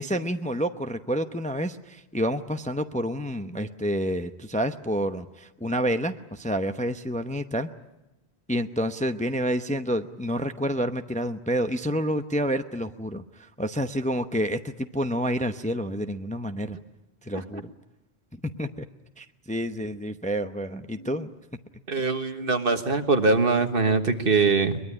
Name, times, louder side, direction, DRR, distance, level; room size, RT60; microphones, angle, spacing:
voice 1, 0.0-7.7 8.5-16.8 17.2-17.7 18.6-18.9 19.2-21.3, equal, 10° left, 8 dB, 0.7 m, -29 dB
voice 2, 21.9-24.8, right 4 dB, 60° right, 7 dB, 1.7 m, -22 dB
22.5 x 21.5 x 9.9 m, 0.94 s
omnidirectional pair, 1.1 m